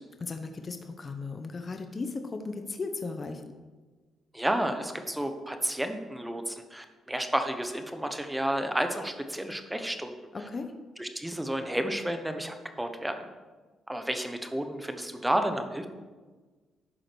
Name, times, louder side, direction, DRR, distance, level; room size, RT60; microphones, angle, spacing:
voice 1, 0.2-3.6 10.3-10.7, left 3 dB, 35° left, 6 dB, 0.9 m, -36 dB
voice 2, 4.3-10.1 11.0-13.3 13.9-15.9, right 1 dB, 5° right, 7 dB, 1.1 m, -31 dB
11.0 x 5.0 x 6.2 m, 1.3 s
cardioid pair, 90°, 0 cm